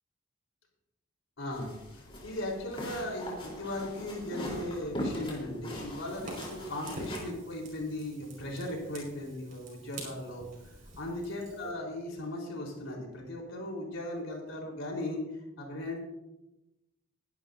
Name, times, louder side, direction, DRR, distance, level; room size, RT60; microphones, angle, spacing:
voice 1, 1.4-10.4 11.0-15.2 15.6-16.0, left 1 dB, 75° left, 0 dB, 4.2 m, -37 dB
sound 1, 1.5-7.2, left 1 dB, 25° left, 3.8 m, -40 dB
Fire, 6.0-11.7, right 1 dB, 40° right, 5.3 m, -46 dB
21.5 x 11.5 x 2.7 m, 0.96 s
head